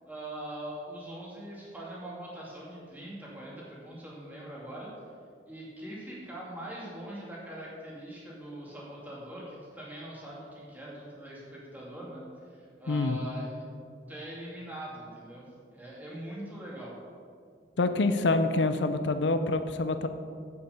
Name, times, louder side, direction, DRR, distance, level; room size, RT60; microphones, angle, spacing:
voice 1, 0.1-4.9 5.5-13.6 14.1-16.9, right 1 dB, 10° right, -5 dB, 2.4 m, -42 dB
voice 2, 12.9-13.2 17.8-20.1, left 2 dB, 80° left, 9 dB, 0.6 m, -26 dB
8.0 x 7.3 x 6.7 m, 2.2 s
head